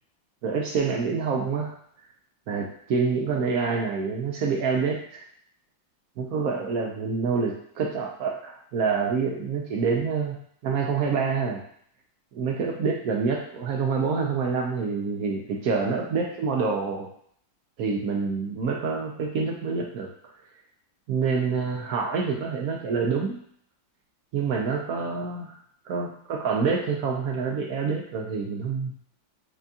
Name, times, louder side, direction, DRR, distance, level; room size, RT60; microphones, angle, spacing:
voice 1, 0.4-1.7 2.5-5.2 6.2-10.4 10.6-11.6 12.3-17.1 17.8-20.1 21.1-23.4 24.3-25.6 25.9-29.0, right 5 dB, 75° right, 0 dB, 0.8 m, -27 dB
6.1 x 2.3 x 2.7 m, 0.64 s
omnidirectional pair, 2.1 m